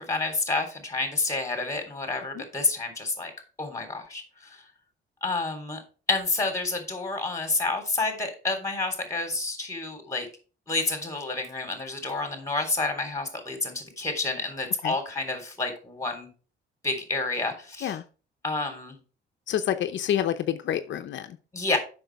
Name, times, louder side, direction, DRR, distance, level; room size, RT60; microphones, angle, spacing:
voice 1, 0.0-3.3 3.6-4.6 5.2-5.8 6.1-10.3 10.7-16.3 16.8-18.0 18.4-19.0 21.5-21.8, left 3 dB, 15° left, 5 dB, 3.5 m, -29 dB
voice 2, 19.5-21.4, left 10 dB, 70° left, 8 dB, 0.8 m, -28 dB
7.8 x 6.2 x 4.7 m, 0.36 s
cardioid pair, 90°, 20 cm